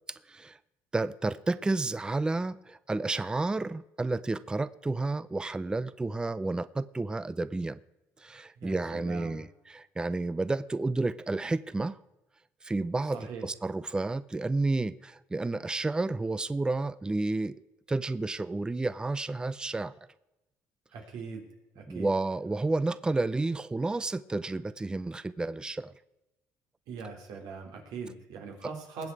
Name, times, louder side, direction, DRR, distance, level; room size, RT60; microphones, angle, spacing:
voice 1, 0.1-0.6 0.9-7.8 8.2-12.0 12.6-17.5 17.9-19.9 21.9-25.9 28.6-28.7, right 2 dB, 15° right, 17 dB, 0.4 m, -31 dB
voice 2, 8.6-9.4 13.1-13.4 20.9-21.5 21.7-22.1 26.9-29.1, right 5 dB, 80° right, 3 dB, 3.4 m, -41 dB
20.0 x 8.2 x 4.8 m, 0.97 s
cardioid pair, 100°, 6 cm